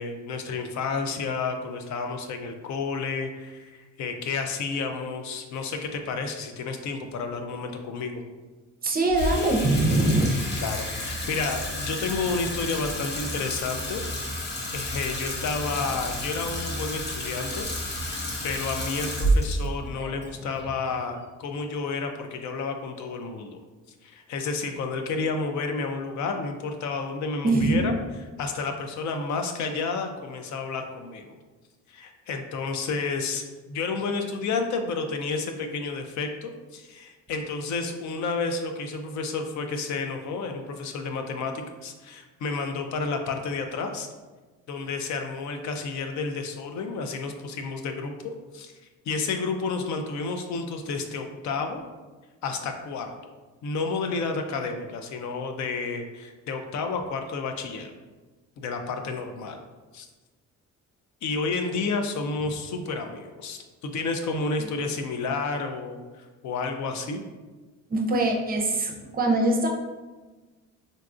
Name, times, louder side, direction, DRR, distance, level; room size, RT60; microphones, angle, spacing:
voice 1, 0.0-8.2 10.6-14.0 14.7-23.6 24.0-27.9 28.4-31.4 31.9-44.1 44.7-48.1 48.5-48.7 49.1-51.8 52.4-53.1 53.6-57.9 58.6-59.6 59.9-60.1 61.2-67.2, left 4 dB, 70° left, 4 dB, 0.5 m, -31 dB
voice 2, 8.8-10.3 27.4-27.8 67.9-69.7, right 2 dB, 30° right, 1 dB, 0.5 m, -23 dB
Water tap faucet / Sink (filling or washing), 9.1-21.5, equal, 35° left, 0.7 m, -31 dB
3.9 x 2.3 x 2.5 m, 1.3 s
cardioid pair, 90°, 30 cm